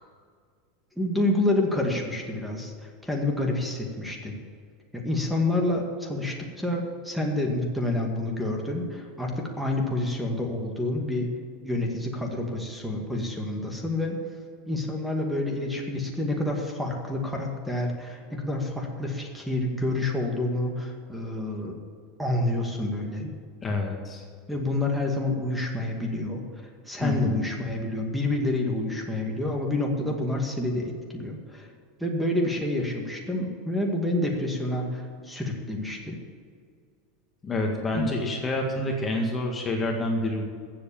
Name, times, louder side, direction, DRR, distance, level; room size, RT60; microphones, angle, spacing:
voice 1, 1.0-4.4 4.9-11.3 11.6-14.2 14.7-21.7 22.2-23.3 24.5-26.4 26.9-31.7 32.0-36.2 37.9-38.1, left 1 dB, ahead, 1 dB, 2.1 m, -28 dB
voice 2, 23.6-24.2 27.0-27.4 37.4-40.4, left 1 dB, 20° left, 1 dB, 1.9 m, -28 dB
15.0 x 7.7 x 7.1 m, 2.1 s
supercardioid pair, 120°, 0 cm